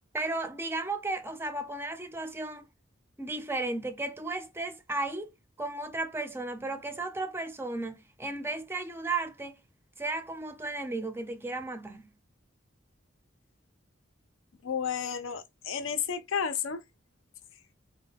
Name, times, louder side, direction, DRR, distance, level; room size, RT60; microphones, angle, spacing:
voice 1, 0.1-2.6 3.2-5.3 5.6-9.6 10.0-12.1, right 2 dB, 10° right, 0.4 m, -34 dB
voice 2, 14.6-16.8, left 7 dB, 75° left, 0.5 m, -32 dB
3.8 x 2.2 x 3.4 m
head